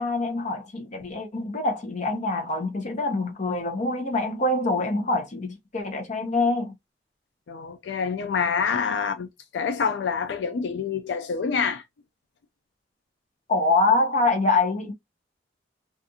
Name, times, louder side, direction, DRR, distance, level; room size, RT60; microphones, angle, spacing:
voice 1, 0.0-6.7 13.5-14.9, left 2 dB, 45° left, 0.8 m, -25 dB
voice 2, 7.5-9.3 9.5-11.8, left 6 dB, 80° left, 0.4 m, -26 dB
2.4 x 2.4 x 2.7 m
head